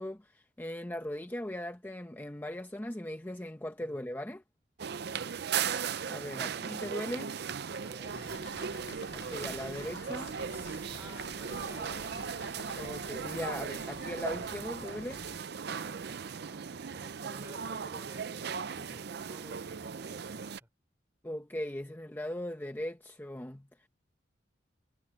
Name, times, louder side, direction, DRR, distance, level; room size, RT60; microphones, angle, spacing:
voice 1, 0.0-4.4 6.1-7.3 9.1-10.4 12.7-15.2 21.2-23.9, left 1 dB, 10° left, 0.7 m, -39 dB
sound 1, 4.8-20.6, right 7 dB, 60° right, 0.5 m, -37 dB
voice 2, 7.8-8.4 10.4-12.4 15.6-20.7, right 1 dB, 15° right, 3.9 m, -53 dB
sound 2, 8.1-15.4, left 5 dB, 65° left, 0.6 m, -50 dB
head